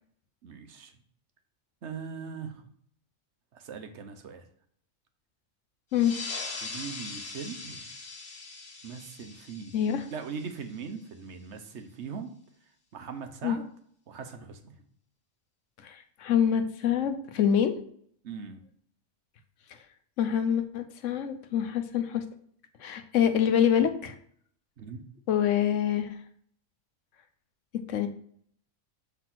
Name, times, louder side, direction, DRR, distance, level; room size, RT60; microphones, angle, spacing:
voice 1, 0.4-0.9 1.8-2.6 3.5-4.4 6.6-7.8 8.8-9.8 10.1-12.3 12.9-13.6 14.1-14.7 18.2-18.6 24.8-25.0, right 6 dB, 65° right, 7 dB, 1.1 m, -40 dB
sound 1, 5.9-11.0, left 3 dB, 55° left, 1.3 m, -41 dB
voice 2, 9.7-10.0 13.4-13.6 15.8-17.7 20.2-22.2 22.8-24.1 25.3-26.1 27.9-28.1, left 9 dB, 85° left, 9 dB, 1.1 m, -26 dB
5.9 x 3.5 x 5.9 m, 0.63 s
omnidirectional pair, 1.3 m